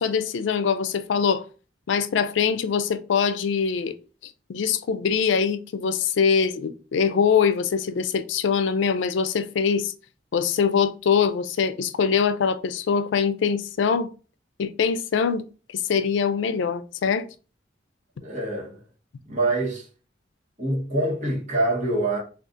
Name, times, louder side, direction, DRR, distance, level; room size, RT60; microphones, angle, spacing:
voice 1, 0.0-1.4 1.9-3.9 4.2-9.9 10.3-14.1 14.6-15.5 15.7-17.3, left 6 dB, 85° left, 0.4 m, -23 dB
voice 2, 18.2-18.8 19.3-19.9 20.6-22.2, right 2 dB, 40° right, 1.1 m, -25 dB
2.6 x 2.4 x 3.6 m
head